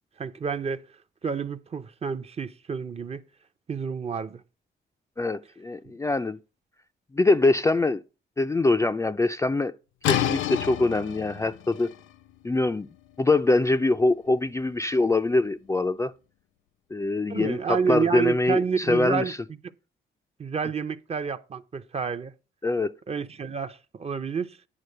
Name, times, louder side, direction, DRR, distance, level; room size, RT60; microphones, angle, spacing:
voice 1, 0.2-0.8 1.2-3.2 3.7-4.4 17.3-19.3 20.4-22.3 23.1-24.6, right 6 dB, 30° right, 0.6 m, -29 dB
voice 2, 5.2-6.4 7.1-8.0 8.4-9.7 10.1-11.9 12.4-12.9 13.2-16.1 16.9-19.4 22.6-22.9, left 2 dB, 15° left, 0.4 m, -23 dB
sound 1, 10.0-15.7, left 11 dB, 80° left, 0.6 m, -32 dB
9.8 x 4.3 x 6.6 m
cardioid pair, 90°, 20 cm